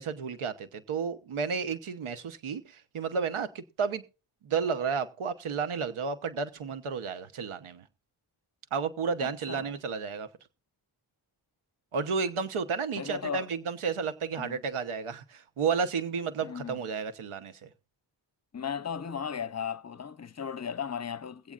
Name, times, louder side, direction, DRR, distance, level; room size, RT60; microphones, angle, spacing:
voice 1, 0.0-4.0 4.4-7.8 8.7-10.3 11.9-17.7, right 5 dB, 80° right, 1.1 m, -32 dB
voice 2, 9.2-9.7 13.0-13.5 14.4-14.6 16.4-16.8 18.5-21.5, left 7 dB, 35° left, 0.7 m, -36 dB
21.5 x 8.3 x 2.5 m
cardioid pair, 50°, 49 cm